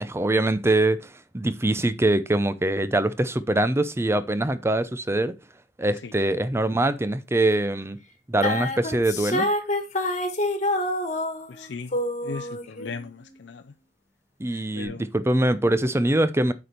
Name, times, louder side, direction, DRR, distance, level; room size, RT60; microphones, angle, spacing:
voice 1, 0.0-5.3 5.8-8.0 8.3-9.5 14.4-16.5, right 1 dB, 15° right, 0.6 m, -23 dB
sound 1, 8.4-11.6 11.9-13.0, left 1 dB, 40° left, 1.5 m, -27 dB
voice 2, 11.5-11.9 12.2-13.6 14.8-15.0, left 4 dB, 90° left, 0.5 m, -37 dB
8.2 x 5.2 x 4.4 m
head